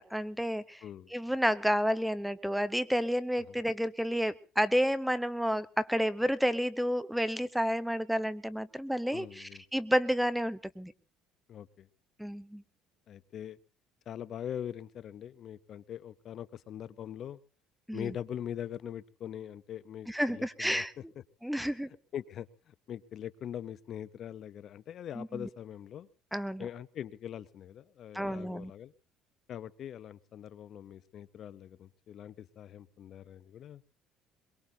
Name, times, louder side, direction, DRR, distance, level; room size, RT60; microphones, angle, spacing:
voice 1, 0.0-0.8 1.1-10.9 12.2-12.6 17.9-18.1 20.1-20.9 21.4-21.9 25.1-25.5 26.3-26.7 28.1-28.7, equal, ahead, 16 dB, 0.8 m, -30 dB
voice 2, 0.8-1.1 3.5-3.6 9.1-9.6 11.5-11.9 13.1-13.6 14.1-17.4 17.9-20.8 22.1-26.1 26.6-28.9 29.5-33.8, left 10 dB, 55° left, 16 dB, 0.8 m, -42 dB
23.0 x 22.5 x 2.8 m, 0.34 s
supercardioid pair, 95°, 0 cm